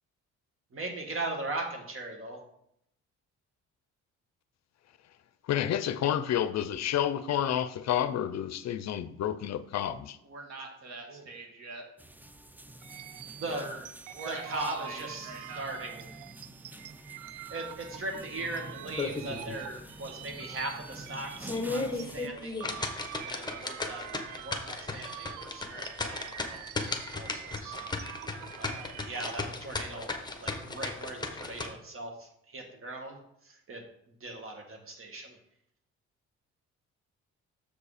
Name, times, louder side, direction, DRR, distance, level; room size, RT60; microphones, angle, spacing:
voice 1, 0.7-2.4 11.1-11.2 13.4-13.6 14.2-16.1 17.5-22.6 23.2-24.0 24.4-26.7 27.1-27.9 28.6-30.1 30.4-33.2 33.4-33.8 34.2-35.4, right 2 dB, 45° right, 3 dB, 1.9 m, -39 dB
voice 2, 5.4-10.2, left 10 dB, 60° left, 12 dB, 0.5 m, -30 dB
voice 3, 10.2-11.8 13.5-13.8 14.1-15.7, right 3 dB, 60° right, 3 dB, 1.9 m, -42 dB
sound 1, 12.0-22.3, right 1 dB, 5° right, 0.4 m, -48 dB
sound 2, 12.8-22.1 22.4-29.3, right 12 dB, 85° right, 0.5 m, -46 dB
sound 3, 18.9-19.6 20.0-20.1 20.6-20.7 21.3-31.7, left 3 dB, 15° left, 1.1 m, -35 dB
7.0 x 5.0 x 5.0 m, 0.75 s
cardioid pair, 90°, 30 cm